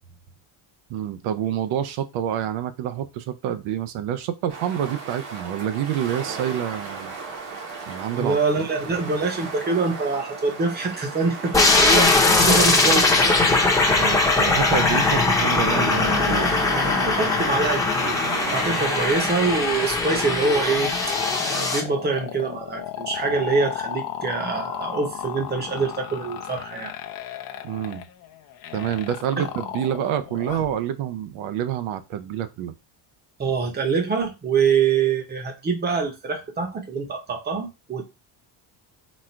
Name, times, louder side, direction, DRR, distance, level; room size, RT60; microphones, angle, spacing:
voice 1, 0.9-7.1 7.9-8.7 13.9-16.6 27.6-28.0 28.7-32.7, right 10 dB, 85° right, 0.8 m, -27 dB
sound 1, 4.5-19.4, right 4 dB, 70° right, 1.4 m, -35 dB
voice 2, 8.2-13.1 16.8-20.9 21.4-26.9 29.4-29.5 33.4-38.0, right 4 dB, 20° right, 0.9 m, -25 dB
sound 2, 11.5-21.8, left 3 dB, 5° left, 0.8 m, -20 dB
sound 3, 14.8-30.8, left 10 dB, 45° left, 0.7 m, -34 dB
4.2 x 2.5 x 4.4 m
cardioid pair, 170°, 47 cm